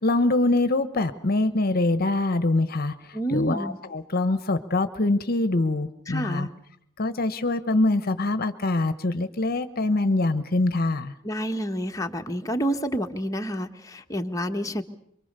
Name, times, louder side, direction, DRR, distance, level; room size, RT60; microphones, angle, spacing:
voice 1, 0.0-6.5 7.0-11.1, left 2 dB, 50° left, 12 dB, 1.1 m, -24 dB
voice 2, 3.1-3.8 6.1-6.5 11.2-14.8, equal, 15° left, 4 dB, 1.5 m, -28 dB
25.0 x 24.0 x 6.8 m, 0.70 s
head